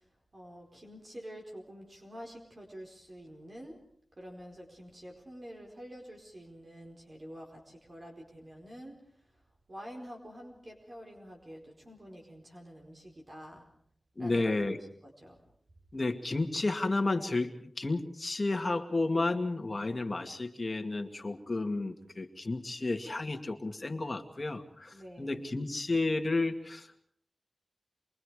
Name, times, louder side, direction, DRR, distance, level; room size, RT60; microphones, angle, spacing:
voice 1, 0.3-3.8 4.2-9.0 9.7-13.7 14.2-14.5 15.0-15.4 24.9-25.4, equal, 40° right, 1 dB, 4.7 m, -48 dB
voice 2, 14.2-14.8 15.9-27.0, left 2 dB, 35° left, 5 dB, 2.2 m, -32 dB
28.0 x 22.5 x 4.9 m, 0.65 s
wide cardioid pair, 75°, 0 cm